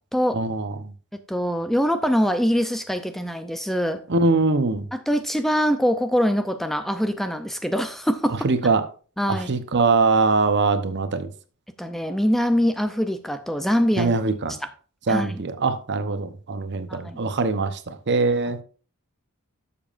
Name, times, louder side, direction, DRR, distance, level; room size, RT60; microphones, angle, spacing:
voice 1, 0.3-0.9 4.1-4.9 8.4-8.8 9.3-11.3 14.0-14.5 15.1-18.6, right 3 dB, 55° right, 0.8 m, -22 dB
voice 2, 1.3-4.0 4.9-8.4 9.2-9.6 11.8-14.2 14.6-14.7 15.1-15.4 16.9-17.2, equal, ahead, 0.5 m, -23 dB
12.5 x 7.0 x 2.5 m
head